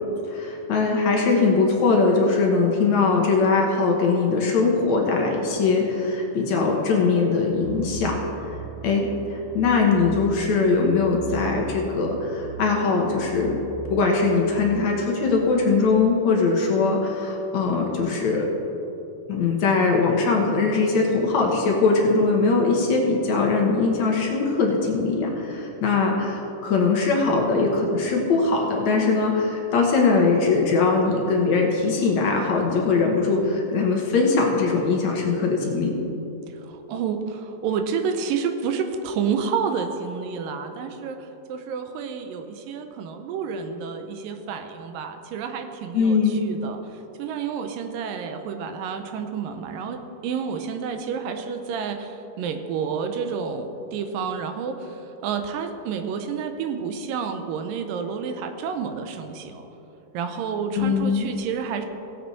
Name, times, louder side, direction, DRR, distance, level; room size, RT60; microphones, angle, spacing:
voice 1, 0.2-8.2 8.8-13.6 13.9-18.5 19.3-35.9 45.9-46.4 60.7-61.3, left 4 dB, 65° left, 0 dB, 2.2 m, -21 dB
sound 1, 7.5-15.7, right 5 dB, 60° right, 3.9 m, -39 dB
voice 2, 36.5-59.7 60.1-61.9, right 6 dB, 85° right, 7 dB, 2.4 m, -30 dB
17.5 x 7.7 x 4.1 m, 3.0 s
omnidirectional pair, 3.9 m